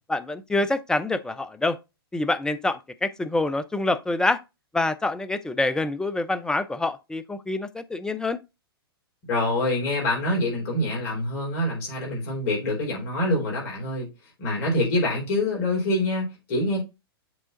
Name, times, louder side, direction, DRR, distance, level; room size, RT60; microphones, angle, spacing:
voice 1, 0.1-1.8 2.1-4.4 4.7-8.4, left 2 dB, 5° left, 0.5 m, -26 dB
voice 2, 9.3-14.1 14.4-16.8, left 1 dB, 40° left, 3.8 m, -25 dB
7.7 x 3.6 x 3.9 m
figure-of-eight pair, 105°, 13 cm